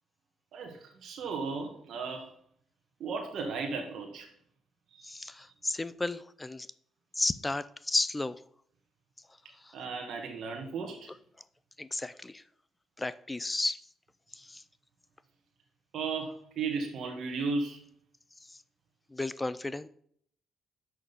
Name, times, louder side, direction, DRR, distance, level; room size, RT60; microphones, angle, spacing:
voice 1, 0.5-2.3 3.0-4.3 4.9-5.2 9.7-11.1 15.9-17.8, right 4 dB, 70° right, 2 dB, 1.7 m, -35 dB
voice 2, 5.0-6.7 7.1-8.4 9.6-9.7 11.8-12.4 13.0-13.8 14.3-14.6 18.5-18.6 19.1-19.9, left 2 dB, 15° left, 16 dB, 0.5 m, -33 dB
6.3 x 6.1 x 7.0 m, 0.63 s
cardioid pair, 80°, 0 cm